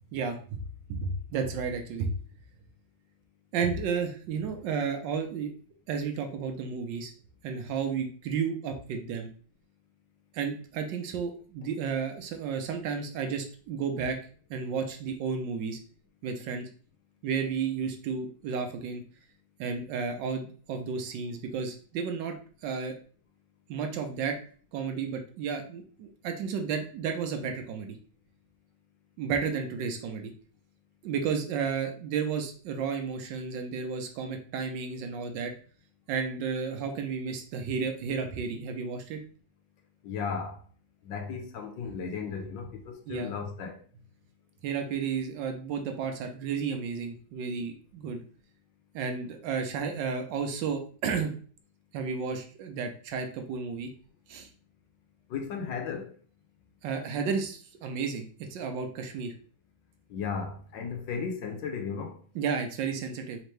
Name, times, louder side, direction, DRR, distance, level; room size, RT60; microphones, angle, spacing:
voice 1, 0.1-0.6 0.9-2.2 3.5-5.5 5.9-7.1 7.4-9.3 10.3-14.2 14.5-15.8 16.2-16.7 17.2-19.0 19.6-22.4 22.6-22.9 23.7-24.4 24.7-28.0 29.2-30.3 31.0-35.5 36.1-39.2 43.1-43.3 44.6-48.2 48.9-51.3 51.9-53.9 54.3-54.5 56.8-59.3 62.3-63.4, right 6 dB, 75° right, 1.3 m, -32 dB
voice 2, 40.0-40.6 41.0-43.8 55.3-56.2 60.1-62.2, left 6 dB, 75° left, 1.3 m, -35 dB
4.3 x 2.9 x 3.2 m
omnidirectional pair, 2.1 m